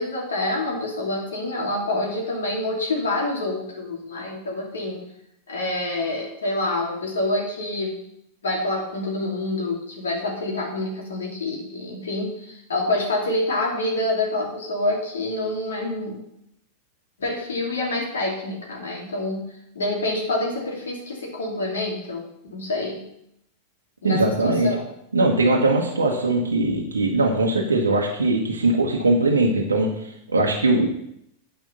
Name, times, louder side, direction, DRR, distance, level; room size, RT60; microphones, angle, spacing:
voice 1, 0.0-5.0 5.5-7.9 8.4-16.2 17.2-19.5 19.7-23.0 24.0-24.8, left 2 dB, 65° left, -1 dB, 2.8 m, -27 dB
voice 2, 24.0-24.7 25.1-30.9, right 2 dB, 75° right, -1 dB, 1.2 m, -21 dB
9.0 x 5.1 x 6.7 m, 0.75 s
figure-of-eight pair, 90°, 0 cm